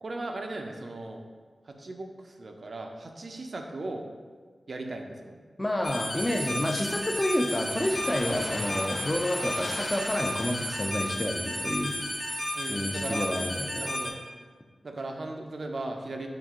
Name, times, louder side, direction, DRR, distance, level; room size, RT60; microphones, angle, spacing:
voice 1, 0.0-1.2 1.6-4.1 4.7-5.4 9.5-9.6 12.5-13.4 13.8-14.2 14.8-16.3, right 2 dB, 60° right, 3 dB, 0.5 m, -37 dB
voice 2, 5.6-12.0 12.7-13.9, left 1 dB, 25° left, 3 dB, 0.5 m, -29 dB
sound 1, 5.8-14.1, left 1 dB, 45° left, 0.9 m, -33 dB
sound 2, 6.2-13.6, left 1 dB, 75° left, 1.2 m, -42 dB
5.7 x 2.6 x 3.6 m, 1.5 s
cardioid pair, 50°, 0 cm